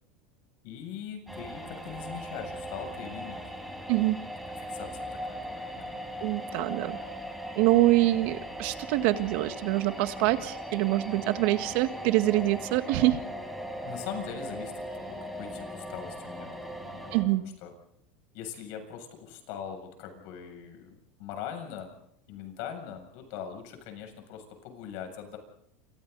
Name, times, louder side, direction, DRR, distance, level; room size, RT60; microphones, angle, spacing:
voice 1, 0.6-3.4 4.5-6.3 13.8-17.7 18.3-21.9 22.3-25.4, left 8 dB, 60° left, 5 dB, 7.4 m, -41 dB
sound 1, 1.3-17.2, equal, ahead, 4.6 m, -39 dB
voice 2, 6.2-7.0 7.6-13.2 17.1-17.4, right 17 dB, 60° right, 9 dB, 1.7 m, -25 dB
29.5 x 27.0 x 4.1 m, 0.72 s
supercardioid pair, 135°, 6 cm